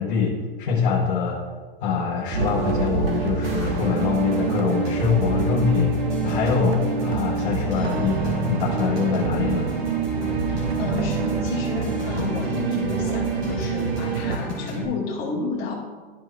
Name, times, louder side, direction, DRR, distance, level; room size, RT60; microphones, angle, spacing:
voice 1, 0.0-1.4 1.8-5.9 6.2-9.7, left 6 dB, 55° left, -3 dB, 1.3 m, -24 dB
sound 1, 2.3-5.5, right 1 dB, 65° right, 2.0 m, -33 dB
sound 2, 2.3-14.4, right 5 dB, 85° right, 0.9 m, -26 dB
sound 3, 3.4-14.8, left 1 dB, 25° right, 1.9 m, -33 dB
voice 2, 10.5-15.7, left 3 dB, 25° left, -7 dB, 2.2 m, -30 dB
12.5 x 4.5 x 3.2 m, 1.4 s
supercardioid pair, 175°, 31 cm